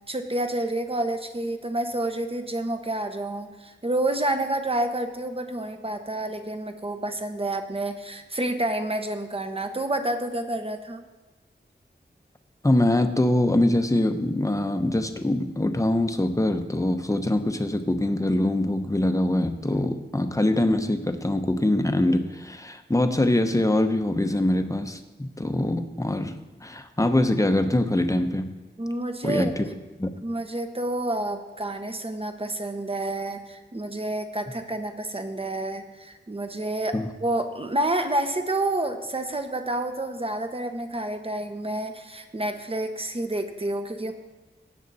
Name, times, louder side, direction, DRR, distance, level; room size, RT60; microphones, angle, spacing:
voice 1, 0.1-11.1 28.8-29.5 30.2-44.1, right 1 dB, 30° right, 6 dB, 1.2 m, -29 dB
voice 2, 12.6-28.5 29.2-29.6 30.0-30.1 36.9-37.1, left 1 dB, 15° left, 7 dB, 0.9 m, -23 dB
17.0 x 7.3 x 4.2 m, 1.2 s
wide cardioid pair, 70°, 19 cm